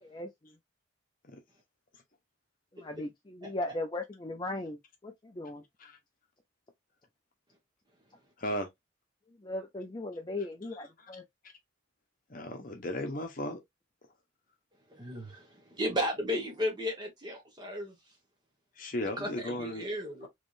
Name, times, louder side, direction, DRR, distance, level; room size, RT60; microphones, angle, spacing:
voice 1, 0.0-0.5 2.7-5.6 9.4-11.2, left 2 dB, 20° left, 0.4 m, -38 dB
voice 2, 12.3-13.6 18.8-19.9, left 1 dB, 45° left, 0.8 m, -35 dB
voice 3, 14.9-18.0 19.0-20.3, equal, 20° right, 1.1 m, -34 dB
3.5 x 3.1 x 2.5 m
head